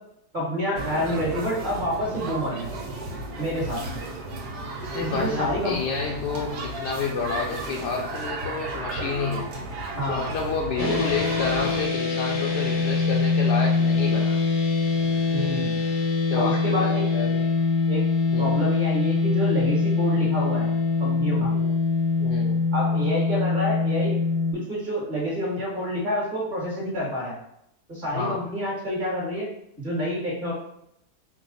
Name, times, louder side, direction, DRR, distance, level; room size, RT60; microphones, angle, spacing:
voice 1, 0.3-2.7 3.4-3.9 5.0-5.8 10.0-10.3 10.8-11.0 15.3-15.7 16.3-17.1 17.9-18.1 18.4-20.7 21.0-21.5 22.7-24.2 24.5-27.3 27.9-29.5 29.8-30.5, equal, 25° right, -6 dB, 1.4 m, -28 dB
sound 1, 0.7-11.8, right 2 dB, 70° right, 1.4 m, -34 dB
voice 2, 4.9-9.5 10.1-14.4 16.3-17.4 18.3-18.5 21.5-21.8 22.2-22.7 28.1-28.4, left 5 dB, 75° left, -1 dB, 1.1 m, -30 dB
sound 2, 10.8-24.5, left 4 dB, 50° left, 0.9 m, -23 dB
4.8 x 2.3 x 3.9 m, 0.77 s
omnidirectional pair, 1.9 m